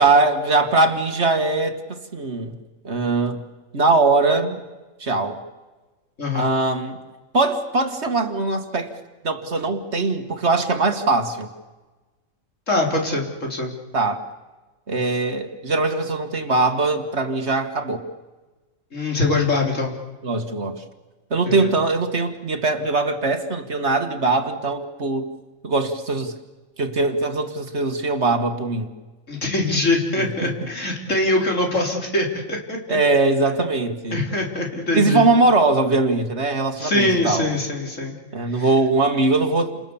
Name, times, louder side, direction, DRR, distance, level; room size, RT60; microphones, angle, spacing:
voice 1, 0.0-2.5 2.8-3.4 3.7-4.6 5.0-5.4 6.3-7.0 7.3-8.9 9.2-11.5 13.9-14.2 14.9-18.1 20.2-20.8 21.3-25.3 25.6-26.3 26.8-28.9 30.2-30.5 32.9-34.2 34.9-37.6 38.3-39.8, right 3 dB, 55° right, 7 dB, 2.0 m, -21 dB
voice 2, 6.2-6.5 12.7-13.7 18.9-19.9 21.5-21.7 29.3-33.0 34.1-35.2 36.8-38.2 38.5-38.7, left 2 dB, 65° left, 0 dB, 4.3 m, -23 dB
30.0 x 27.5 x 7.1 m, 1.2 s
omnidirectional pair, 1.4 m